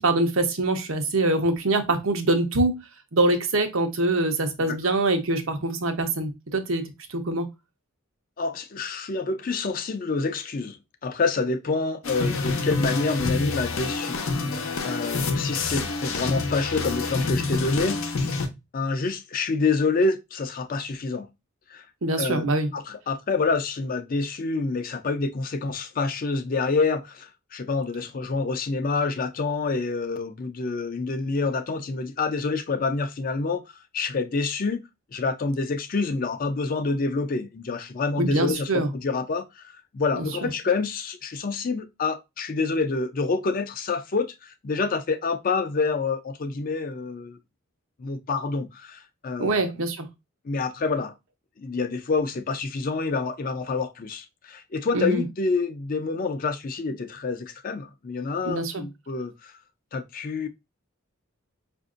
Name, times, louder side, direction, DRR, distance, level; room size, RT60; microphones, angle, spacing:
voice 1, 0.0-2.8 3.1-6.8 7.1-7.5 22.0-22.7 38.2-38.9 40.2-40.5 49.4-50.1 54.9-55.2 58.4-58.8, right 2 dB, 80° right, 0.8 m, -24 dB
voice 2, 8.4-10.8 11.0-14.6 14.8-18.0 18.7-21.3 21.7-21.8 22.2-22.4 22.7-33.6 33.9-34.8 35.1-39.6 39.9-47.4 48.0-49.7 50.5-51.1 51.6-59.5 59.9-60.5, left 4 dB, 45° left, 0.4 m, -27 dB
sound 1, 12.0-18.5, left 3 dB, 90° left, 0.7 m, -27 dB
5.1 x 2.6 x 2.4 m
head